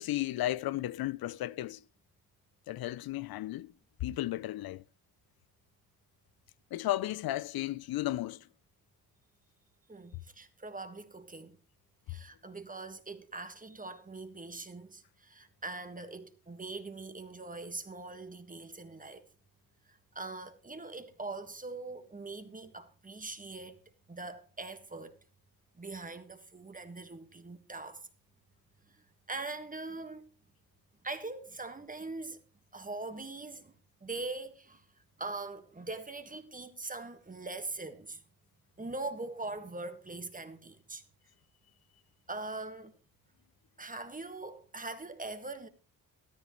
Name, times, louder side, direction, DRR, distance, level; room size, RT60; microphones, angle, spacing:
voice 1, 0.0-1.8 2.7-3.7 4.0-4.8 6.7-8.5, left 15 dB, 70° left, 0.6 m, -34 dB
voice 2, 9.9-11.6 12.1-19.3 19.9-23.8 24.1-25.2 25.8-28.1 28.9-30.3 31.0-32.4 32.7-33.7 34.0-34.9 35.2-38.2 38.8-41.0 42.3-42.9 43.8-45.7, right 3 dB, 20° right, 1.7 m, -42 dB
14.0 x 13.0 x 3.1 m
cardioid pair, 80°, 38 cm